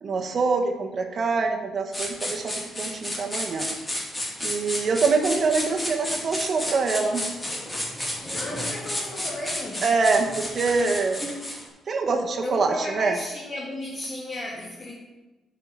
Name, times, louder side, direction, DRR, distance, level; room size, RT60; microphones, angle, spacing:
voice 1, 0.0-3.7 4.4-7.2 9.8-11.2 11.9-13.1, right 4 dB, 50° right, 3 dB, 1.4 m, -25 dB
sound 1, 1.9-11.7, left 1 dB, 20° left, 2.8 m, -32 dB
voice 2, 8.3-9.9 12.4-15.0, left 1 dB, 35° left, -3 dB, 2.1 m, -34 dB
9.1 x 5.0 x 7.5 m, 1.1 s
cardioid pair, 90°, 0 cm